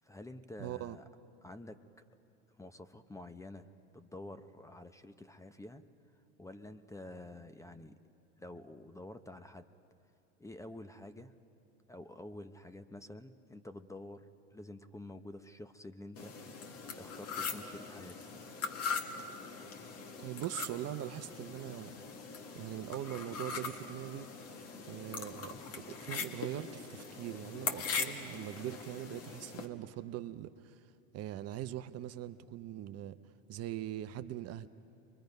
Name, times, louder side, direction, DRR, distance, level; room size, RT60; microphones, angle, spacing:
voice 1, 0.0-1.0 1.4-1.8 2.6-3.7 3.9-5.8 6.4-8.0 8.4-9.6 10.4-11.3 11.9-18.2, left 1 dB, 10° left, 0.7 m, -49 dB
voice 2, 0.6-1.0 20.2-21.9 22.5-24.3 24.9-30.8 31.1-33.2 33.5-34.7, right 13 dB, 45° right, 0.7 m, -41 dB
sound 1, 16.2-29.7, left 5 dB, 40° left, 1.8 m, -41 dB
29.5 x 23.0 x 5.3 m
hypercardioid pair, 95°, 36 cm